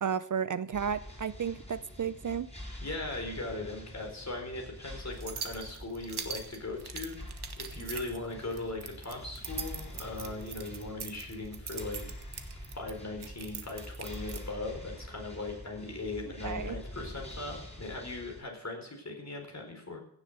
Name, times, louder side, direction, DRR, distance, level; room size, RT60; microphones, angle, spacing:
voice 1, 0.0-2.5 16.4-16.8, right 7 dB, 50° right, 16 dB, 0.5 m, -33 dB
sound 1, 0.7-18.4, left 1 dB, 15° left, 5.5 m, -46 dB
voice 2, 2.8-7.2 7.6-12.0 12.3-12.4 12.8-20.0, left 2 dB, 45° left, 2 dB, 4.3 m, -39 dB
sound 2, 5.1-14.5, right 6 dB, 80° right, 1.4 m, -43 dB
16.0 x 7.3 x 6.7 m, 0.68 s
wide cardioid pair, 80°, 39 cm